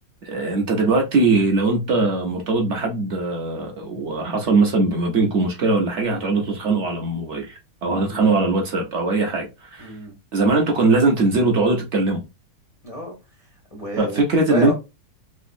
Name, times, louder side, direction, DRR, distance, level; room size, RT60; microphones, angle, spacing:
voice 1, 0.2-9.9 10.3-12.2 14.0-14.7, right 3 dB, 60° right, 0.7 m, -20 dB
voice 2, 7.9-8.3 9.8-10.1 12.8-14.2 14.5-14.7, equal, 65° left, 0.3 m, -31 dB
3.4 x 2.9 x 2.5 m
omnidirectional pair, 2.0 m